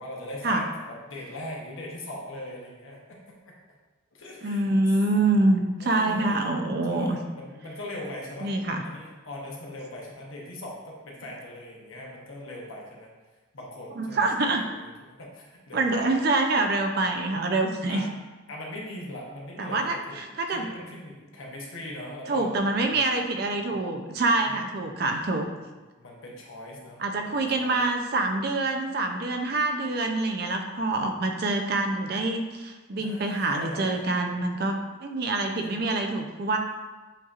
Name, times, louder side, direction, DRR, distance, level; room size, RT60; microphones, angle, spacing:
voice 1, 0.0-3.6 4.1-4.9 5.8-8.6 8.8-13.1 13.5-16.2 17.9-18.1 18.5-23.1 24.4-25.2 26.0-27.8 33.0-34.1 35.6-35.7, left 1 dB, 80° left, -2 dB, 1.0 m, -41 dB
voice 2, 4.4-7.2 8.4-8.8 14.0-14.6 15.7-18.0 19.6-20.7 22.3-25.5 27.0-36.6, right 2 dB, 50° right, 4 dB, 0.4 m, -26 dB
7.3 x 2.8 x 2.4 m, 1.2 s
head